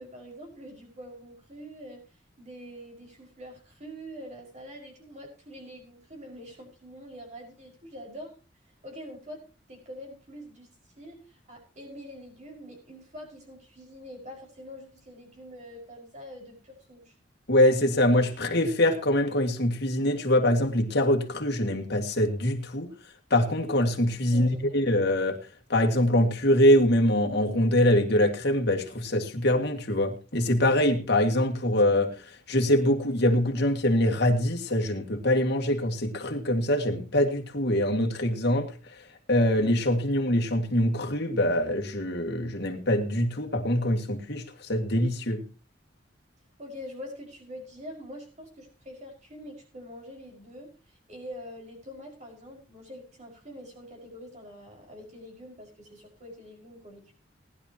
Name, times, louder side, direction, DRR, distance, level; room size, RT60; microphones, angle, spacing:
voice 1, 0.0-8.3 8.7-10.7 11.0-17.1 24.3-24.8 46.6-57.1, equal, 40° right, 5.5 m, -45 dB
voice 2, 17.5-22.9 23.3-25.4 25.7-38.7 39.3-45.4, left 1 dB, 60° left, 2.1 m, -24 dB
19.5 x 11.0 x 2.9 m
head